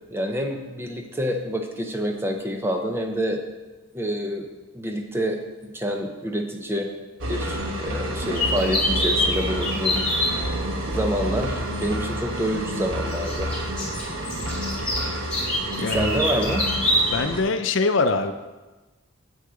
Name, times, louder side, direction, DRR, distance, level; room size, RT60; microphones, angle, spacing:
voice 1, 0.1-3.4 3.9-4.5 4.7-6.9 7.3-10.1 10.3-10.5 10.9-13.5 15.9-16.7, equal, 10° right, 3 dB, 0.7 m, -27 dB
sound 1, 7.2-17.4, right 1 dB, 75° right, 1.1 m, -29 dB
sound 2, 8.3-10.3 11.8-11.9 13.1-17.2, left 1 dB, 5° left, 2.0 m, -25 dB
voice 2, 15.8-16.1 17.1-18.3, left 3 dB, 65° left, 9 dB, 0.5 m, -23 dB
7.8 x 6.5 x 4.9 m, 1.2 s
head